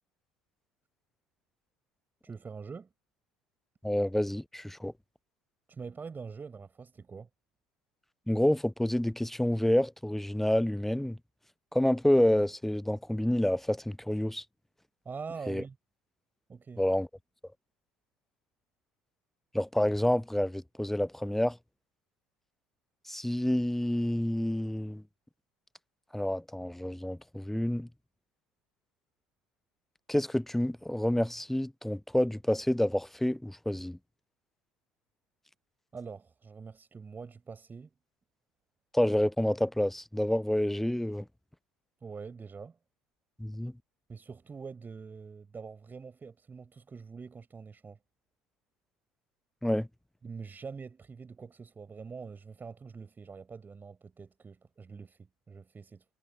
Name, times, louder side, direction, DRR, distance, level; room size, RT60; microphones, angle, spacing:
voice 1, 2.2-2.9 5.7-7.3 15.0-15.8 16.5-16.8 35.9-37.9 42.0-42.8 44.1-48.0 50.2-56.0, right 5 dB, 25° right, 4.1 m, -44 dB
voice 2, 3.8-4.9 8.3-11.2 11.7-14.4 15.5-15.6 16.8-17.1 19.5-21.6 23.1-25.0 26.1-27.9 30.1-34.0 38.9-41.3 43.4-43.7 49.6-49.9, left 1 dB, 5° left, 0.8 m, -28 dB
figure-of-eight pair, 60°, 7 cm